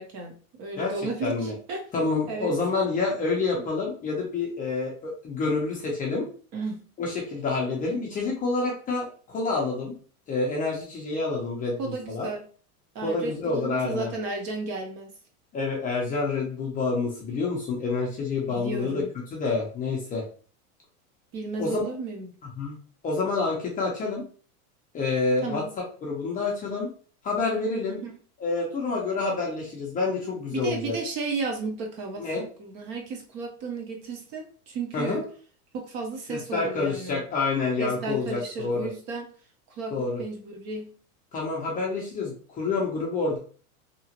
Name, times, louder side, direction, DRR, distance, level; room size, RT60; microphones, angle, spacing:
voice 1, 0.0-1.9 2.3-2.5 6.5-6.8 11.8-12.4 12.9-15.1 18.5-19.1 21.3-22.3 25.4-25.7 28.0-28.1 30.5-32.3 32.6-35.2 35.7-37.2 37.8-39.3 39.7-40.9, right 3 dB, 35° right, 3 dB, 0.7 m, -33 dB
voice 2, 1.2-1.5 1.9-6.3 7.0-9.9 10.3-12.3 13.0-14.1 15.5-19.0 19.3-20.2 21.6-21.8 22.6-22.8 23.0-24.2 24.9-25.6 26.0-26.9 27.2-28.0 28.4-30.9 32.2-32.4 34.9-35.2 36.3-38.9 39.9-40.2 41.3-43.4, left 3 dB, 20° left, -2 dB, 0.5 m, -28 dB
2.9 x 2.4 x 2.8 m, 0.42 s
supercardioid pair, 140°, 43 cm